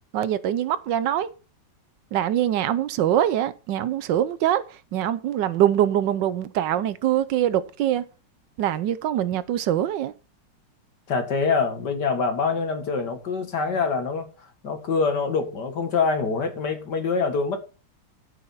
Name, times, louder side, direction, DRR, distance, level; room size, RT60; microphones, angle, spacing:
voice 1, 0.1-1.3 2.1-8.0 8.6-10.1, right 11 dB, 80° right, 1.3 m, -23 dB
voice 2, 11.1-14.3 14.6-17.6, left 4 dB, 65° left, 2.2 m, -25 dB
12.0 x 5.7 x 5.6 m
omnidirectional pair, 2.0 m